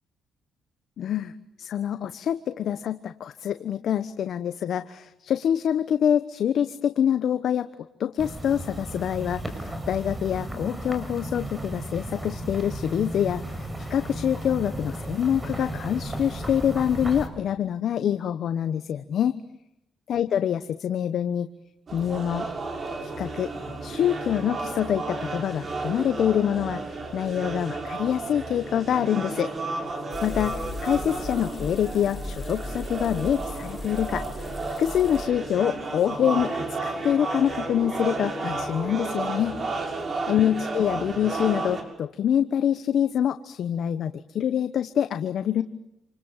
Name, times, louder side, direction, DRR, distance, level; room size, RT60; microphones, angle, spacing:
voice 1, 1.0-1.3 1.6-7.7 8.0-19.4 20.1-21.5 21.9-22.5 23.0-23.5 23.8-26.8 27.1-29.5 30.2-34.2 34.8-39.6 40.2-45.6, left 9 dB, 65° left, 11 dB, 1.1 m, -26 dB
sound 1, 8.2-17.3, right 1 dB, 15° right, 6.2 m, -34 dB
sound 2, 21.9-41.8, right 3 dB, 40° right, 6.5 m, -32 dB
sound 3, 30.1-35.3, left 2 dB, 35° left, 2.0 m, -37 dB
28.0 x 27.0 x 7.4 m, 0.87 s
cardioid pair, 90°, 0 cm